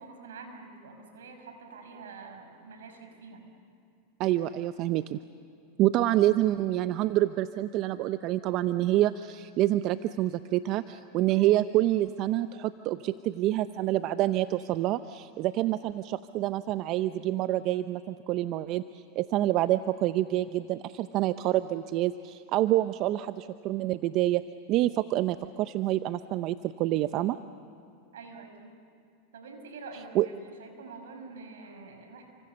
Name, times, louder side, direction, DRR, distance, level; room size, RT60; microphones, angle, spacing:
voice 1, 0.0-3.5 28.1-28.7 29.3-32.2, right 4 dB, 80° right, 4 dB, 5.9 m, -46 dB
voice 2, 4.2-5.2 5.8-24.4 24.7-27.4 30.1-30.3, right 14 dB, 50° right, 12 dB, 0.7 m, -27 dB
30.0 x 26.0 x 6.9 m, 2.6 s
hypercardioid pair, 105°, 0 cm